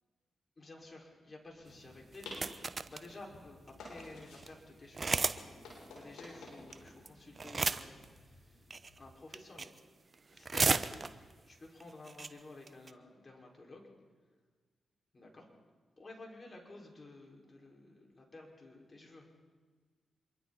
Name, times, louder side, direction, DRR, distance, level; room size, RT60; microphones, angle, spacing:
voice 1, 0.6-5.5 5.9-8.0 8.2-8.6 9.0-9.7 10.3-10.9 11.5-13.8 15.1-15.5 16.0-19.2, left 2 dB, 40° left, -1 dB, 5.5 m, -52 dB
sound 1, 1.5-9.0, left 2 dB, 90° left, 7.3 m, -53 dB
sound 2, 2.1-3.1 3.7-3.8 4.0-4.1 4.3-4.5 4.9-5.4 5.7-5.8 6.7-7.1 7.4-8.0 8.7-9.0 9.3-9.8 10.1-11.3 11.8-11.9 12.1-12.3 12.7-12.9, right 4 dB, 45° right, 0.9 m, -32 dB
26.0 x 23.0 x 4.3 m, 1.4 s
supercardioid pair, 45°, 0 cm